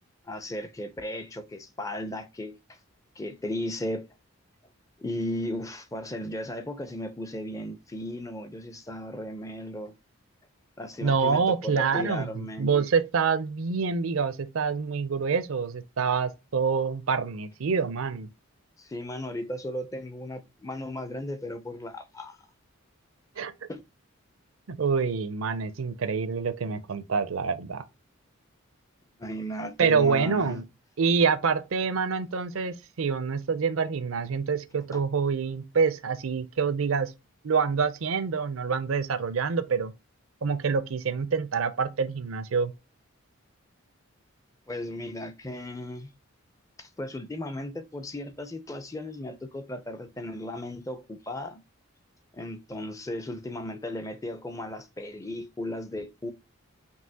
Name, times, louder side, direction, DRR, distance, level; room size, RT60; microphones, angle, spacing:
voice 1, 0.2-2.8 3.2-4.1 5.0-9.9 10.8-12.7 18.8-22.5 23.7-23.8 29.2-30.6 34.9-35.0 44.7-46.1 46.8-51.6 52.3-56.3, left 1 dB, 15° left, 0.4 m, -36 dB
voice 2, 11.0-18.3 23.4-23.5 24.7-27.8 29.8-30.6 31.0-37.1 37.4-39.9 40.4-42.7, right 5 dB, 75° right, 0.5 m, -26 dB
5.4 x 2.8 x 2.7 m
head